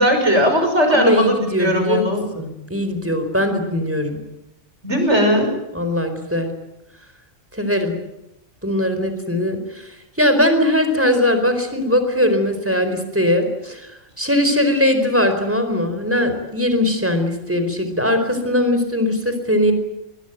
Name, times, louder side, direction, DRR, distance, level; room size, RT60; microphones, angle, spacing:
voice 1, 0.0-2.2 4.8-5.5, equal, 55° right, 5 dB, 6.6 m, -18 dB
voice 2, 0.9-2.1 2.3-4.2 5.7-6.5 7.5-7.9 8.6-13.9 14.2-19.7, left 1 dB, 10° right, 8 dB, 4.4 m, -20 dB
23.0 x 21.0 x 9.2 m, 0.88 s
omnidirectional pair, 1.4 m